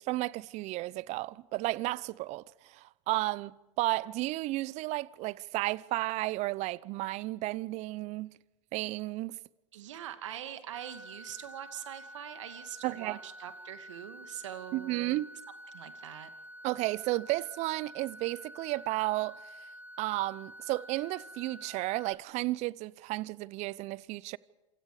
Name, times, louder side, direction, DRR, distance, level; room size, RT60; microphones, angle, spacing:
voice 1, 0.0-8.4 8.7-9.4 12.8-13.2 14.7-15.3 16.6-19.4 20.0-24.4, right 19 dB, 45° right, 0.8 m, -33 dB
voice 2, 9.7-15.2 15.7-16.3, right 11 dB, 75° right, 2.3 m, -43 dB
sound 1, 10.7-22.1, equal, 10° right, 2.4 m, -49 dB
28.0 x 25.5 x 5.0 m
hypercardioid pair, 95°, 16 cm